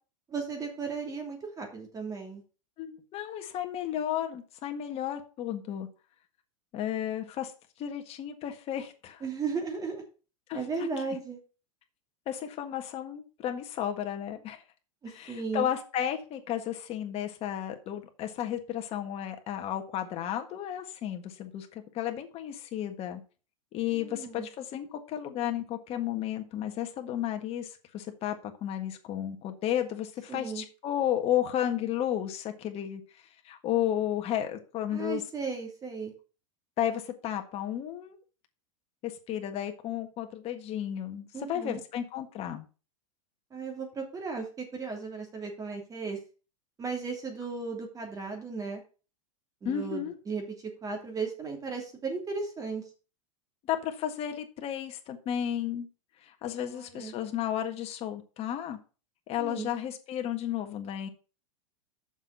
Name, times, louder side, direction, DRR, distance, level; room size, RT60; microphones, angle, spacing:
voice 1, 0.3-2.4 9.2-10.0 10.5-11.4 15.0-15.7 23.9-24.5 30.3-30.6 34.9-36.1 41.3-41.8 43.5-46.2 46.8-48.8 49.6-52.8 56.6-57.1 59.4-59.7, right 4 dB, 20° right, 3 dB, 3.0 m, -36 dB
voice 2, 2.8-5.9 6.7-7.5 7.8-9.2 10.5-10.9 12.3-14.6 15.1-23.2 23.7-33.0 33.4-35.2 36.8-38.2 39.0-42.7 49.6-50.1 53.7-55.9 56.2-58.8 59.3-61.1, left 10 dB, 35° left, 6 dB, 1.6 m, -33 dB
7.3 x 6.0 x 6.8 m, 0.35 s
supercardioid pair, 140°, 18 cm